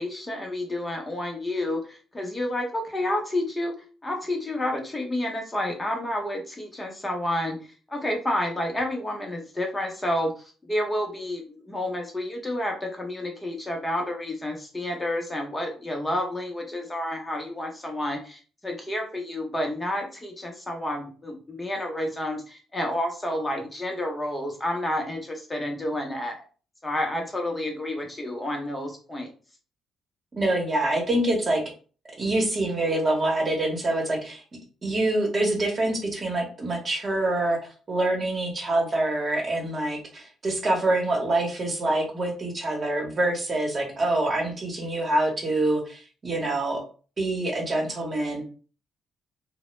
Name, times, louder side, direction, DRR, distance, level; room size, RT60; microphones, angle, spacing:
voice 1, 0.0-3.7 4.0-26.4 26.8-29.3, left 1 dB, 20° left, 1 dB, 0.6 m, -30 dB
voice 2, 30.3-31.6 32.2-34.4 34.8-37.6 37.9-46.8 47.2-48.4, right 2 dB, 35° right, 1 dB, 0.9 m, -25 dB
2.1 x 2.0 x 3.0 m, 0.37 s
cardioid pair, 90°, 0 cm